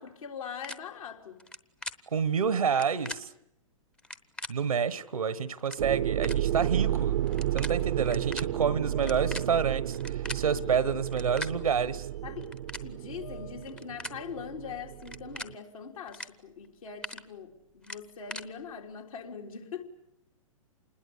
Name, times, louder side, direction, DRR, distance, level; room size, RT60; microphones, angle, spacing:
voice 1, 0.0-1.4 12.2-12.5 12.8-19.8, left 6 dB, 75° left, 3.7 m, -42 dB
reloading gun or maybe not, 0.6-0.8 1.4-1.6 1.8-2.0 2.7-3.2 4.0-4.5 5.3-5.4 5.6-5.8 6.2-6.4 7.3-7.7 8.0-8.4 9.0-10.4 11.1-11.5 12.4-12.8 13.6-14.2 15.0-15.5 16.1-16.3 16.6-17.2 17.8-18.4, left 1 dB, 5° left, 0.9 m, -39 dB
voice 2, 2.1-3.3 4.5-7.2 7.5-12.1, right 6 dB, 80° right, 1.4 m, -28 dB
sound 1, 5.8-15.5, right 12 dB, 60° right, 0.9 m, -32 dB
sound 2, 7.3-14.0, left 6 dB, 90° left, 5.5 m, -52 dB
27.5 x 20.5 x 8.5 m
hypercardioid pair, 115°, 18 cm